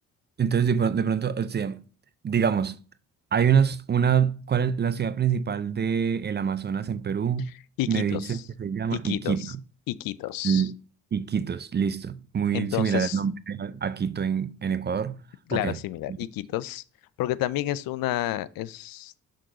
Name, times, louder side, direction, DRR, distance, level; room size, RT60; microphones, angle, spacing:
voice 1, 0.4-1.8 2.2-2.8 3.3-7.5 7.9-9.6 10.4-10.7 11.1-15.2 15.5-15.8 16.1-16.2, right 7 dB, 30° right, 0.5 m, -25 dB
voice 2, 7.8-8.4 8.9-9.5 9.9-10.7 12.5-13.2 15.5-16.8 17.2-19.1, left 14 dB, 65° left, 0.5 m, -30 dB
6.4 x 3.8 x 3.8 m
hypercardioid pair, 50°, 37 cm